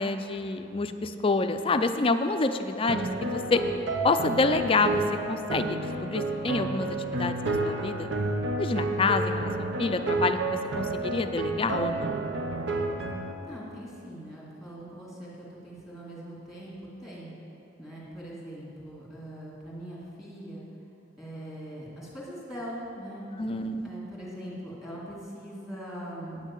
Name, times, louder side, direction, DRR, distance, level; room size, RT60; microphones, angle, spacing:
voice 1, 0.0-3.6 4.0-8.1 8.6-9.5 9.8-12.2 23.4-23.9, left 3 dB, 30° left, 9 dB, 0.4 m, -27 dB
sound 1, 2.9-13.3, right 2 dB, 70° right, 0.8 m, -30 dB
voice 2, 13.4-17.3 17.8-20.6 21.2-23.5 23.8-26.4, equal, ahead, -6 dB, 2.2 m, -41 dB
9.1 x 6.2 x 8.3 m, 2.8 s
head